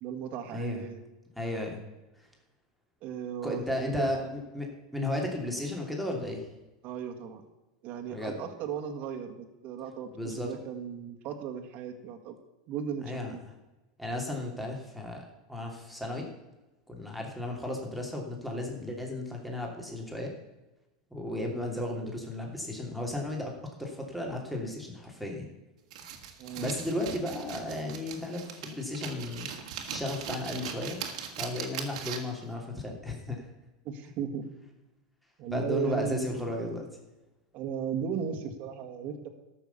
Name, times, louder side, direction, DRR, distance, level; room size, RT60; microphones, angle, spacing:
voice 1, 0.0-1.0 3.0-4.3 6.8-7.4 7.8-10.1 10.4-12.3 12.7-13.4 26.4-26.7 33.8-34.4 35.4-36.6 37.5-39.3, right 7 dB, 50° right, 4 dB, 1.9 m, -36 dB
voice 2, 0.5-0.8 1.4-1.8 2.2-2.3 3.4-6.5 8.1-8.4 10.1-10.5 13.0-13.3 14.0-16.3 16.9-20.3 21.1-25.5 26.6-29.5 29.9-31.0 31.4-33.5 35.5-36.9, left 1 dB, ahead, 0 dB, 2.8 m, -34 dB
sound 1, 25.9-32.4, right 8 dB, 75° right, 2.0 m, -40 dB
13.5 x 6.3 x 7.1 m, 1.0 s
hypercardioid pair, 115°, 4 cm